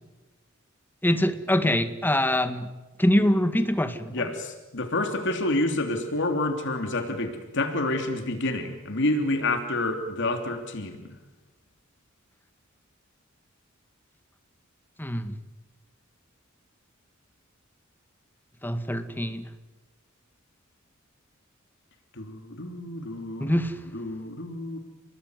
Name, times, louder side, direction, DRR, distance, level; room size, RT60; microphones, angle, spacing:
voice 1, 1.0-2.7 3.0-4.1 15.0-15.3 18.6-19.5 23.4-23.7, left 1 dB, 10° left, 9 dB, 2.0 m, -24 dB
voice 2, 4.1-11.2 22.2-23.5 23.9-24.8, left 2 dB, 60° left, 6 dB, 3.0 m, -28 dB
29.5 x 20.5 x 9.6 m, 1.2 s
head